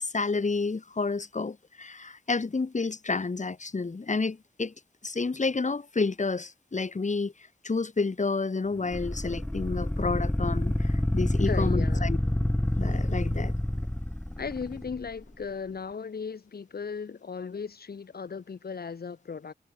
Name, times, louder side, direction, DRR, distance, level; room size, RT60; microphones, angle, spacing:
voice 1, 0.0-4.7 5.0-7.3 7.6-12.2 12.8-13.5, left 4 dB, 45° left, 3.1 m, -30 dB
sound 1, 8.9-15.1, left 1 dB, 5° left, 0.8 m, -28 dB
voice 2, 11.5-12.1 14.4-19.5, left 5 dB, 70° left, 2.4 m, -36 dB
cardioid pair, 65°, 17 cm